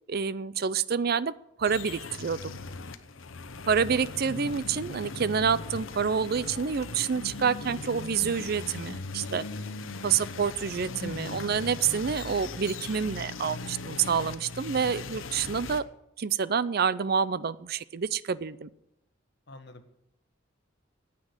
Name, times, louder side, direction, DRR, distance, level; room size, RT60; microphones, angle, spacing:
voice 1, 0.1-1.3 1.6-2.5 3.7-9.4 10.0-15.8 16.2-18.7, right 6 dB, 50° right, 18 dB, 0.5 m, -28 dB
sound 1, 1.6-15.8, left 3 dB, 75° left, 0.8 m, -39 dB
voice 2, 11.0-11.4 19.5-20.0, left 1 dB, 55° left, 7 dB, 1.3 m, -41 dB
9.7 x 8.5 x 9.5 m, 0.86 s
head